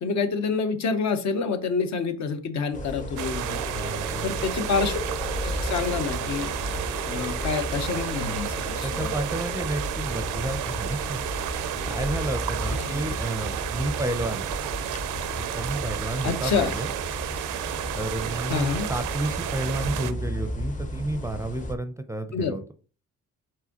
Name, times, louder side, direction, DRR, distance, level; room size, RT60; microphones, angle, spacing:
voice 1, 0.0-4.0 4.2-5.0 5.6-6.5 7.0-9.1 12.8-13.1 16.2-16.7 18.5-18.9 22.3-22.6, left 5 dB, 65° left, 8 dB, 0.9 m, -27 dB
sound 1, 2.7-21.8, left 1 dB, 25° left, 0.7 m, -34 dB
sound 2, 3.2-20.1, right 12 dB, 85° right, 0.5 m, -32 dB
voice 2, 3.7-4.5 8.8-11.2 11.8-14.5 15.3-16.9 17.9-22.7, right 2 dB, 10° right, 9 dB, 0.4 m, -31 dB
4.8 x 3.6 x 2.9 m, 0.37 s
cardioid pair, 90°, 30 cm